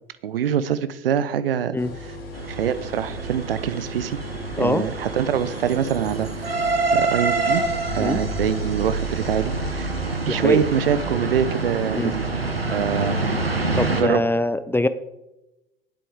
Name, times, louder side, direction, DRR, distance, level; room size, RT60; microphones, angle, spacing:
voice 1, 0.2-1.8 2.5-4.2 4.6-6.6 6.9-7.6 7.9-9.9 10.3-12.3 12.7-13.2 14.0-14.2, right 8 dB, 75° right, 14 dB, 0.8 m, -24 dB
sound 1, 1.8-14.0, left 1 dB, 75° left, 3.1 m, -38 dB
sound 2, 2.3-14.0, right 3 dB, 90° right, 1.1 m, -26 dB
voice 2, 10.3-10.6 11.9-12.1 13.7-14.9, left 2 dB, 5° left, 13 dB, 0.6 m, -23 dB
18.0 x 8.3 x 3.6 m, 0.95 s
figure-of-eight pair, 70°, 29 cm